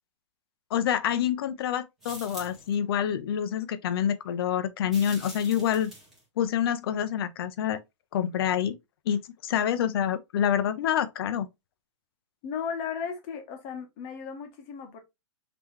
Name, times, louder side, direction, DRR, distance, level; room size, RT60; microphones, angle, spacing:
voice 1, 0.7-5.9 6.4-7.8 8.1-8.7 9.1-11.5, left 9 dB, 50° left, 0.5 m, -27 dB
sound 1, 2.0-2.7 4.9-6.2, right 1 dB, ahead, 1.4 m, -44 dB
voice 2, 12.4-15.0, left 6 dB, 30° left, 1.0 m, -35 dB
3.8 x 2.8 x 3.1 m
hypercardioid pair, 165°, 16 cm